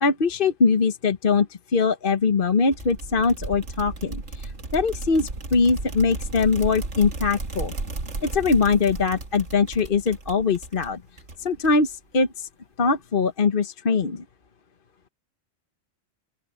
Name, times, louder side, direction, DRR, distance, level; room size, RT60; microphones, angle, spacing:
voice 1, 0.0-7.7 8.2-11.0 11.4-12.5 12.8-14.2, left 4 dB, 50° left, 1.3 m, -22 dB
sound 1, 2.7-11.9, right 3 dB, 70° right, 2.6 m, -34 dB
open air
omnidirectional pair, 1.3 m